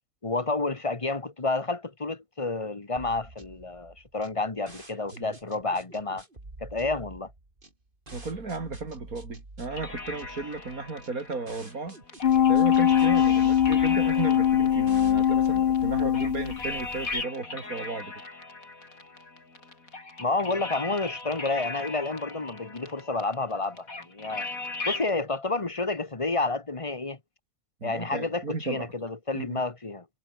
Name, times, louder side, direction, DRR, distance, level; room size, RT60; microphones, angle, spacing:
voice 1, 0.2-6.2 6.6-7.3 20.2-24.5 24.8-27.2 27.8-30.0, left 3 dB, 25° left, 1.5 m, -30 dB
sound 1, 3.0-16.6, right 2 dB, 35° right, 4.1 m, -48 dB
voice 2, 8.1-12.0 12.5-18.1 27.8-28.9 29.3-29.6, right 3 dB, 90° right, 3.9 m, -35 dB
sound 2, 9.7-25.1, left 3 dB, 80° left, 4.5 m, -39 dB
sound 3, 12.2-16.8 17.2-17.3, left 9 dB, 50° left, 0.8 m, -22 dB
omnidirectional pair, 1.5 m